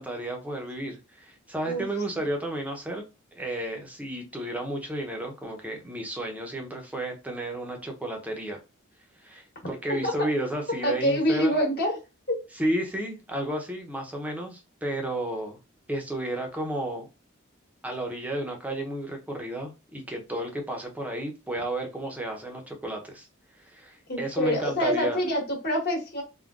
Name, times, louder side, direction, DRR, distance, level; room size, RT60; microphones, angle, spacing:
voice 1, 0.0-3.0 3.3-8.6 9.2-11.5 12.5-15.6 15.9-17.1 17.8-23.3 23.6-25.2, right 1 dB, 5° right, 0.6 m, -32 dB
voice 2, 10.8-12.0 12.3-12.4 24.1-26.2, equal, 45° left, 1.3 m, -26 dB
3.6 x 2.1 x 2.3 m
head